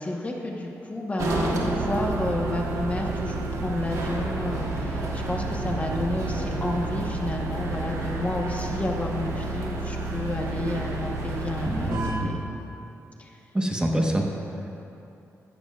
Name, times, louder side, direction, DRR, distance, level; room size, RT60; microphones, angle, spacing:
voice 1, 0.0-12.5 13.2-13.4, left 2 dB, 25° left, 0 dB, 1.1 m, -31 dB
sound 1, 1.2-12.1, right 2 dB, 80° right, 1.5 m, -30 dB
voice 2, 11.7-12.4 13.5-14.2, right 1 dB, 15° right, 0 dB, 1.2 m, -26 dB
14.0 x 13.5 x 2.4 m, 2.8 s
cardioid pair, 95°, 6 cm